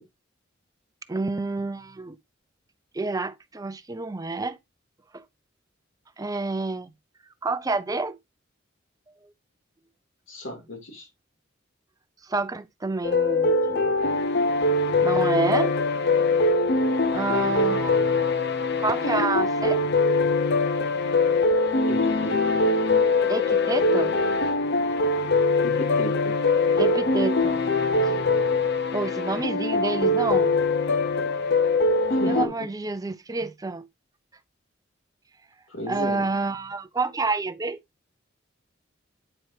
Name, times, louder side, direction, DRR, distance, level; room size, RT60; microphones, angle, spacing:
voice 1, 1.1-2.2 2.9-4.6 5.1-5.2 6.2-6.9 7.4-8.2 12.2-13.9 15.0-15.8 17.1-18.3 18.8-19.8 23.3-24.1 26.8-27.6 28.0-28.2 28.9-30.6 32.3-33.9 35.9-37.8, right 3 dB, 20° right, 0.5 m, -28 dB
voice 2, 10.3-11.1 21.9-22.6 25.6-26.4 32.1-32.5 35.7-36.3, equal, 80° left, 2.7 m, -34 dB
sound 1, 13.0-32.5, left 3 dB, 60° left, 0.7 m, -22 dB
8.8 x 4.7 x 2.8 m
head